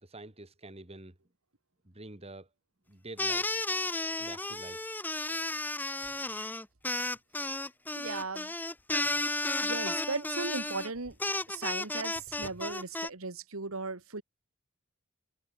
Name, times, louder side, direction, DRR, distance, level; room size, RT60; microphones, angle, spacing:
voice 1, 0.0-1.2 1.8-2.5 2.9-3.5 4.2-4.8, right 2 dB, 30° right, 2.3 m, -47 dB
sound 1, 3.2-13.1, left 2 dB, 10° left, 2.0 m, -33 dB
voice 2, 8.0-8.5 9.6-11.2 11.5-14.2, right 3 dB, 90° right, 1.9 m, -37 dB
head